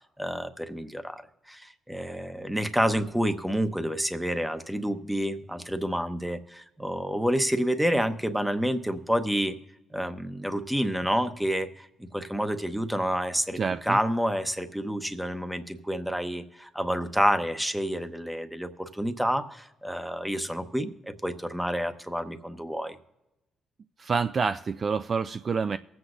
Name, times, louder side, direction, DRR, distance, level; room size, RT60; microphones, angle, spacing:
voice 1, 0.2-1.2 1.5-9.6 9.9-11.9 12.1-23.0, equal, 5° right, 9 dB, 0.8 m, -29 dB
voice 2, 13.6-14.0 24.0-25.8, right 5 dB, 40° right, 10 dB, 0.3 m, -27 dB
23.0 x 7.9 x 2.5 m, 0.96 s
cardioid pair, 90°, 0 cm